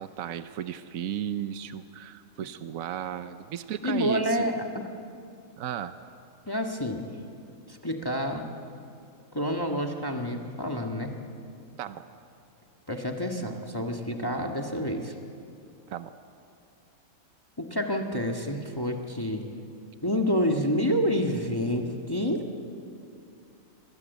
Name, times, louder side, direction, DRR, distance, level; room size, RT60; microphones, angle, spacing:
voice 1, 0.0-4.5 5.6-6.0 11.8-12.1 15.9-16.1, right 10 dB, 80° right, 10 dB, 1.2 m, -35 dB
voice 2, 3.8-4.8 6.5-7.0 7.7-8.5 9.3-11.1 12.9-15.1 17.6-19.4 20.0-22.5, equal, 15° left, 2 dB, 1.7 m, -28 dB
28.0 x 23.5 x 8.2 m, 2.5 s
omnidirectional pair, 1.4 m